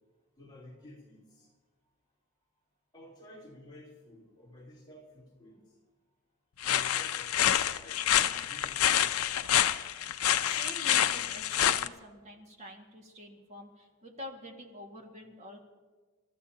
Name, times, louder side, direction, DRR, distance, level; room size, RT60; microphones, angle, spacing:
voice 1, 0.4-1.5 2.9-5.6 6.6-7.4 7.7-9.5, left 1 dB, 20° left, -5 dB, 3.5 m, -53 dB
sound 1, 6.6-11.9, left 11 dB, 75° left, 0.6 m, -27 dB
voice 2, 10.5-15.6, equal, 30° right, 1 dB, 1.9 m, -46 dB
29.0 x 13.5 x 2.9 m, 1.4 s
head